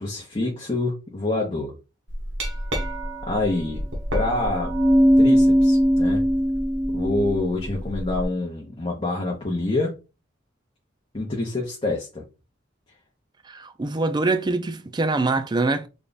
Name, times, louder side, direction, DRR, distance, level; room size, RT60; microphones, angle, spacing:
voice 1, 0.0-1.7 3.3-3.8 4.1-4.8 5.2-6.2 6.9-9.9 11.1-12.2, left 2 dB, 30° left, 0.8 m, -26 dB
Glass, 2.1-8.2, equal, 70° right, 1.1 m, -21 dB
voice 2, 13.5-15.9, right 3 dB, 20° right, 0.4 m, -24 dB
3.4 x 2.4 x 3.9 m
head